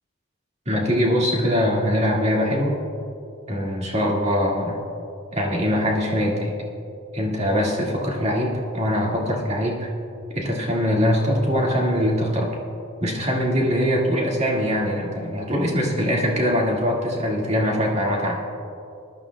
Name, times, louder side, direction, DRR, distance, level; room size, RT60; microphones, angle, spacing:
voice 1, 0.7-2.7 3.5-4.8 5.3-6.5 7.1-9.9 10.3-12.5 13.0-18.4, equal, 30° right, -3 dB, 2.1 m, -22 dB
21.0 x 12.0 x 2.3 m, 2.6 s
head